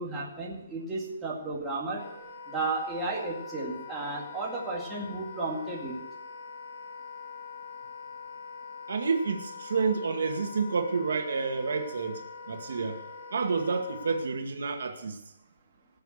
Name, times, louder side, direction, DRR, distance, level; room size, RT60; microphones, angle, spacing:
voice 1, 0.0-2.1 2.5-6.0, right 3 dB, 5° right, -6 dB, 2.3 m, -33 dB
Wind instrument woodwind instrument, 2.0-14.3, left 5 dB, 60° left, 4.7 m, -43 dB
voice 2, 8.9-12.2 12.5-13.0 13.3-15.2, right 4 dB, 65° right, 4 dB, 2.1 m, -29 dB
18.5 x 7.0 x 6.6 m, 0.84 s
hypercardioid pair, 180°, 0 cm